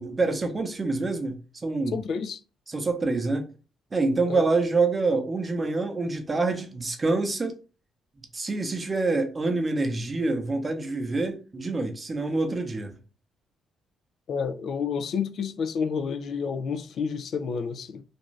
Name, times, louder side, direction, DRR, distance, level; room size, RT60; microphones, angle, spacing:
voice 1, 0.0-1.3 1.6-2.0 2.7-3.4 3.9-7.6 8.3-12.9, right 3 dB, 25° right, 0.7 m, -26 dB
voice 2, 1.9-2.4 4.3-4.4 14.3-18.0, left 6 dB, 65° left, 0.3 m, -30 dB
2.5 x 2.3 x 3.1 m
cardioid pair, 90°, 0 cm